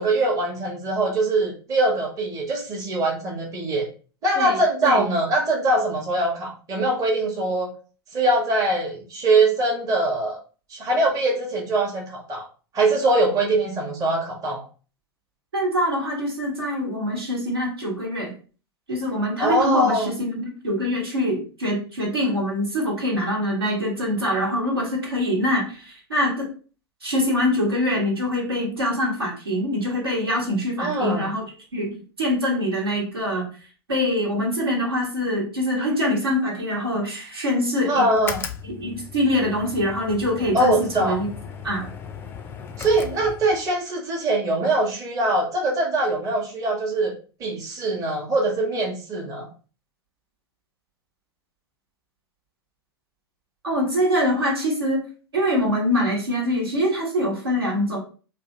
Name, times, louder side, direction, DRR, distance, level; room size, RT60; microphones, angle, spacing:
voice 1, 0.0-3.9 4.2-7.7 8.1-10.4 10.7-12.4 12.7-14.6 19.4-20.1 30.8-31.3 37.9-38.4 40.5-41.2 42.8-49.5, right 2 dB, 25° right, -1 dB, 0.9 m, -22 dB
voice 2, 4.3-5.0 15.5-18.3 18.9-26.5 27.0-31.4 31.7-33.5 33.9-38.1 38.8-41.3 41.6-41.9 53.6-55.0 55.3-58.0, left 1 dB, 75° right, -2 dB, 1.2 m, -24 dB
sound 1, 38.1-43.8, left 7 dB, 20° left, 0.3 m, -37 dB
3.2 x 2.5 x 3.0 m, 0.37 s
figure-of-eight pair, 90°, 13 cm